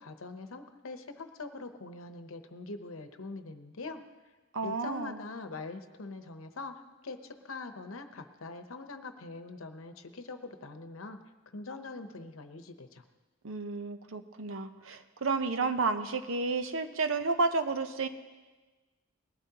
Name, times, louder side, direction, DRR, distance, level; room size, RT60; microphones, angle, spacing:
voice 1, 0.0-4.0 4.6-11.2 11.5-13.0, left 3 dB, 80° left, 8 dB, 0.9 m, -43 dB
voice 2, 4.5-5.2 13.4-18.1, right 3 dB, 70° right, 9 dB, 0.8 m, -31 dB
19.5 x 13.0 x 2.9 m, 1.2 s
head